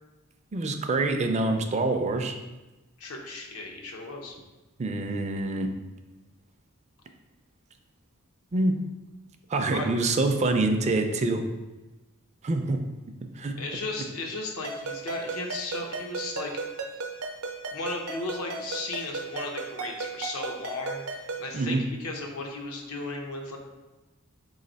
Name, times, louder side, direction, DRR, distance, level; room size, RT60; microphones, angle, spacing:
voice 1, 0.5-2.3 4.8-5.7 8.5-8.8 9.5-11.4 12.4-12.8 13.4-13.5 21.5-21.8, right 2 dB, 30° right, 5 dB, 0.4 m, -25 dB
voice 2, 3.0-4.4 9.7-9.9 13.6-16.6 17.7-23.6, left 2 dB, 80° left, 1 dB, 0.8 m, -35 dB
Ringtone, 14.6-21.5, right 3 dB, 80° right, 0.6 m, -36 dB
4.0 x 3.1 x 3.9 m, 1.1 s
head